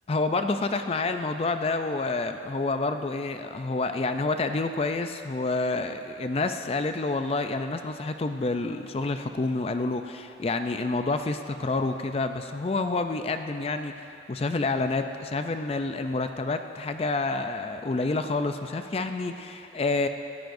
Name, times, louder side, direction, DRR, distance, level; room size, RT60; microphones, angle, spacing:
voice 1, 0.1-20.1, left 3 dB, 30° left, 7 dB, 0.4 m, -28 dB
18.0 x 14.0 x 2.6 m, 2.8 s
head